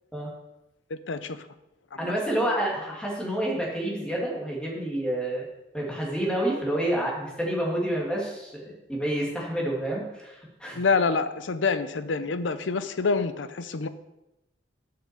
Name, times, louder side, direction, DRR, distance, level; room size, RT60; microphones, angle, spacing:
voice 1, 0.9-1.4 2.0-2.1 10.7-13.9, left 4 dB, 80° left, 12 dB, 0.6 m, -27 dB
voice 2, 2.0-5.4 5.7-10.8, right 1 dB, 5° left, -3 dB, 2.1 m, -29 dB
7.4 x 5.8 x 6.7 m, 0.95 s
head